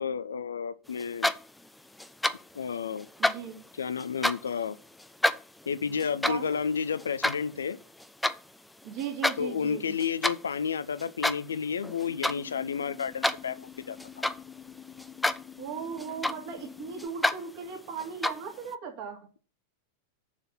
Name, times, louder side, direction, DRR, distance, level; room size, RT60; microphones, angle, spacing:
voice 1, 0.0-1.3 2.5-3.1 3.8-4.8 5.7-7.8 9.4-14.2, left 6 dB, 70° left, 0.6 m, -31 dB
sound 1, 1.0-1.7 2.0-2.6 2.9-4.6 5.0-8.4 8.8-9.4 9.7-10.5 11.0-11.6 11.8-12.4 12.8-14.6 15.0-15.5 15.8-16.7 17.0-17.4 18.0-18.5, left 1 dB, 5° left, 0.6 m, -29 dB
voice 2, 3.2-3.6 6.2-6.5 8.8-9.9 15.6-19.2, right 6 dB, 45° right, 2.9 m, -37 dB
sound 2, 12.1-17.1, left 10 dB, 30° left, 1.0 m, -47 dB
7.2 x 6.5 x 7.4 m
figure-of-eight pair, 90°, 0 cm